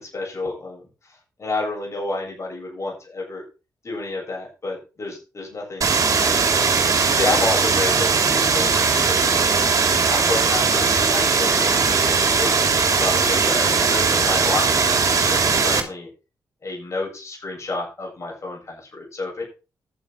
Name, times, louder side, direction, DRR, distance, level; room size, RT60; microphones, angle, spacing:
voice 1, 0.0-3.4 3.8-12.5 12.9-16.1 16.6-19.4, left 2 dB, 40° left, -2 dB, 7.8 m, -30 dB
sound 1, 5.8-15.8, right 5 dB, 50° right, 3.1 m, -19 dB
11.5 x 7.4 x 6.0 m, 0.31 s
cardioid pair, 95°, 7 cm